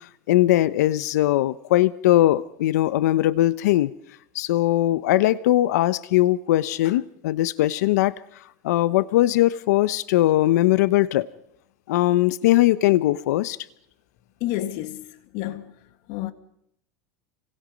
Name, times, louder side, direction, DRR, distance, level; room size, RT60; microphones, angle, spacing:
voice 1, 0.3-3.9 4.3-8.1 8.6-11.3 11.9-13.6, left 15 dB, 80° left, 1.0 m, -20 dB
voice 2, 14.4-15.1 15.3-15.6 16.1-16.3, left 14 dB, 55° left, 1.9 m, -29 dB
29.5 x 24.5 x 5.3 m
supercardioid pair, 150°, 9 cm